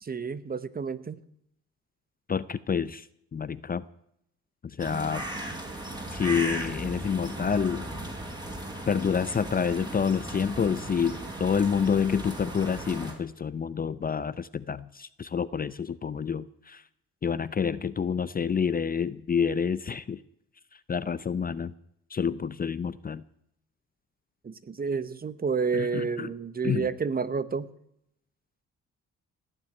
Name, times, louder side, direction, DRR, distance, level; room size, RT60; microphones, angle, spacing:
voice 1, 0.0-1.2 24.4-27.7, right 5 dB, 30° right, 15 dB, 1.0 m, -30 dB
voice 2, 2.3-3.9 4.6-5.2 6.1-7.9 8.9-16.8 17.2-20.2 20.7-21.7 22.1-23.2 25.7-26.3 26.6-26.9, left 6 dB, 30° left, 17 dB, 0.6 m, -28 dB
sound 1, 4.8-13.1, right 1 dB, 15° right, 4.4 m, -37 dB
18.5 x 7.4 x 9.8 m, 0.73 s
cardioid pair, 90°, 30 cm